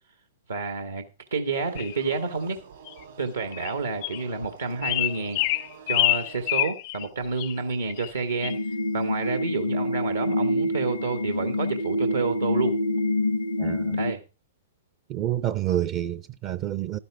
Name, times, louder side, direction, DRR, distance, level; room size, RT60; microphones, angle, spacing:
voice 1, 0.5-1.0 1.3-2.6 3.2-5.6 5.9-8.5 8.9-12.7 13.9-14.2, right 4 dB, 80° right, 1.5 m, -29 dB
sound 1, 1.5-6.5, right 6 dB, 65° right, 1.9 m, -47 dB
sound 2, 1.8-2.0 2.9-3.0 3.5-3.7 4.0-4.2 4.8-7.1 7.4-7.5 7.9-8.1 8.4-8.6, left 19 dB, 40° left, 0.4 m, -26 dB
sound 3, 8.4-14.1, left 1 dB, 80° left, 0.7 m, -26 dB
voice 2, 13.6-14.0 15.1-17.0, right 12 dB, 35° right, 0.5 m, -28 dB
11.5 x 10.5 x 3.6 m
figure-of-eight pair, 115°, 0 cm